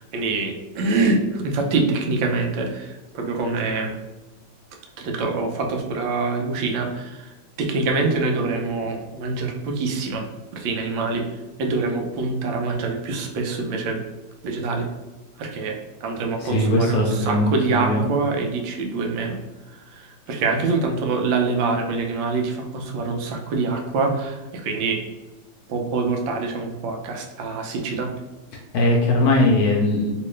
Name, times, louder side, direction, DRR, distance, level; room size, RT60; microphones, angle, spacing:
voice 1, 0.0-3.9 5.0-7.3 7.6-10.2 10.5-11.3 11.6-14.0 14.4-14.9 15.4-19.4 19.9-25.0 25.7-28.1, right 3 dB, 85° right, 2 dB, 1.4 m, -25 dB
voice 2, 16.4-18.1 28.7-30.3, left 1 dB, 70° left, -1 dB, 0.9 m, -20 dB
3.0 x 2.9 x 3.1 m, 1.1 s
omnidirectional pair, 2.0 m